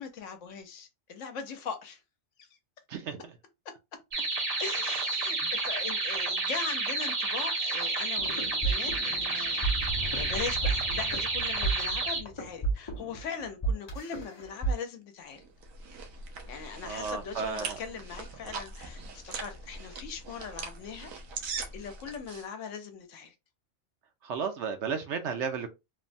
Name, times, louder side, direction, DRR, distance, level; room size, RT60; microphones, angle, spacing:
voice 1, 0.0-2.0 2.4-2.5 4.6-9.7 10.1-15.4 16.5-21.1 21.7-23.3, left 6 dB, 70° left, 1.0 m, -40 dB
voice 2, 2.9-3.2 5.4-5.5 16.8-17.8 24.2-25.7, right 6 dB, 70° right, 0.8 m, -33 dB
sound 1, 4.1-12.2, right 3 dB, 40° right, 0.5 m, -30 dB
sound 2, 8.2-14.7, right 3 dB, 30° left, 0.5 m, -33 dB
sound 3, 15.4-22.5, right 4 dB, 90° right, 1.1 m, -41 dB
3.2 x 2.1 x 2.5 m
omnidirectional pair, 1.4 m